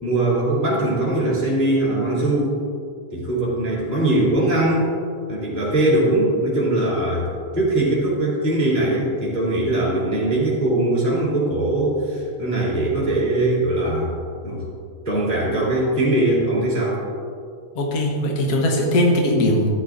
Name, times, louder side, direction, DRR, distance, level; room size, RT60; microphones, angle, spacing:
voice 1, 0.0-2.6 3.1-4.9 5.3-14.1 14.4-14.6 15.0-17.0, right 1 dB, 5° left, -7 dB, 2.3 m, -21 dB
voice 2, 17.7-19.7, left 1 dB, 70° left, 0 dB, 0.8 m, -19 dB
14.0 x 9.9 x 2.6 m, 2.3 s
omnidirectional pair, 3.5 m